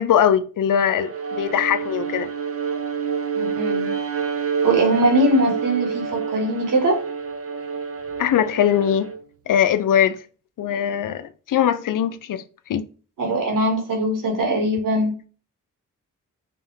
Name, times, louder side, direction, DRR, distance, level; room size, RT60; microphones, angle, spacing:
voice 1, 0.0-2.3 8.2-9.1 9.5-10.2 10.6-12.4 12.7-12.9, left 9 dB, 75° left, 0.5 m, -21 dB
Bowed string instrument, 0.8-9.2, right 6 dB, 45° right, 0.8 m, -28 dB
voice 2, 3.3-3.9 4.6-7.0 13.2-15.1, right 1 dB, 75° right, 2.0 m, -21 dB
5.3 x 2.7 x 3.4 m
cardioid pair, 85°, 33 cm